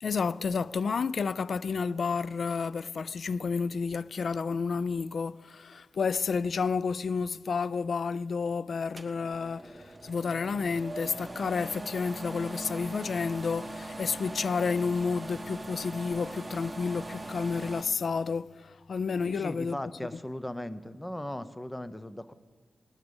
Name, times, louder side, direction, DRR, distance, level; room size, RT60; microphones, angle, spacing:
voice 1, 0.0-19.8, left 5 dB, 65° left, 0.3 m, -30 dB
sound 1, 9.0-17.8, right 2 dB, 20° right, 1.2 m, -41 dB
voice 2, 19.3-22.3, left 1 dB, 10° left, 0.8 m, -38 dB
19.0 x 10.0 x 5.4 m
cardioid pair, 75°, 0 cm